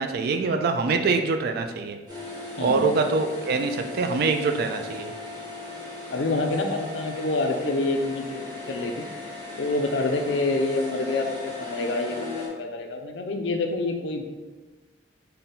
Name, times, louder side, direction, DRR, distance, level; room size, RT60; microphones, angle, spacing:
voice 1, 0.0-2.0 2.6-5.1, right 4 dB, 60° right, 6 dB, 0.3 m, -24 dB
sound 1, 2.1-12.5, left 2 dB, 25° right, 1.0 m, -38 dB
voice 2, 6.1-9.1 9.6-14.2, left 2 dB, 90° left, 4 dB, 0.5 m, -27 dB
3.8 x 2.2 x 3.9 m, 1.2 s
head